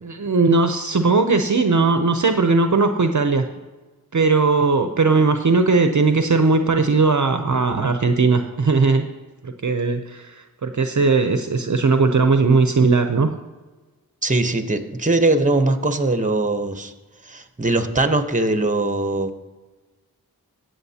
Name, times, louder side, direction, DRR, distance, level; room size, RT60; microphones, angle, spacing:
voice 1, 0.0-3.5 4.1-9.1 9.4-13.3, right 4 dB, 50° right, 7 dB, 0.7 m, -18 dB
voice 2, 14.2-16.9 17.2-19.3, right 2 dB, 20° right, 8 dB, 1.0 m, -21 dB
16.0 x 7.7 x 2.8 m, 1.2 s
wide cardioid pair, 45°, 37 cm